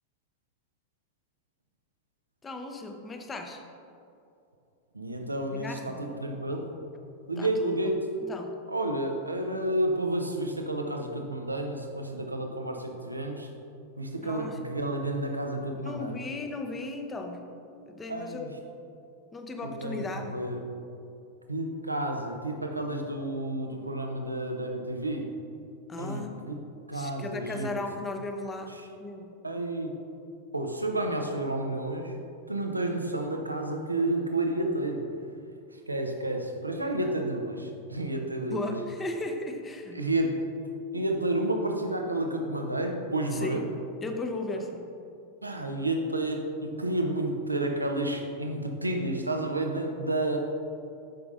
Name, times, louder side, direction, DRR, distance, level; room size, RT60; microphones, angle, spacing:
voice 1, 2.4-3.6 5.5-6.1 7.4-7.7 8.3-8.6 14.2-14.6 15.8-17.5 17.9-18.6 19.3-20.4 25.9-26.3 26.9-29.4 38.5-40.1 43.3-43.7 44.0-44.9, left 2 dB, 15° left, 5 dB, 0.8 m, -36 dB
voice 2, 4.9-6.7 7.3-8.0 8.7-13.5 14.0-16.2 18.1-18.5 19.6-20.6 21.5-25.3 26.0-26.6 26.9-27.7 29.4-29.9 30.5-32.1 32.5-35.0 35.9-38.7 39.9-40.4 40.9-43.6 45.4-50.4, right 1 dB, 85° right, 3 dB, 0.8 m, -30 dB
14.0 x 5.9 x 2.7 m, 2.7 s
figure-of-eight pair, 90°, 0 cm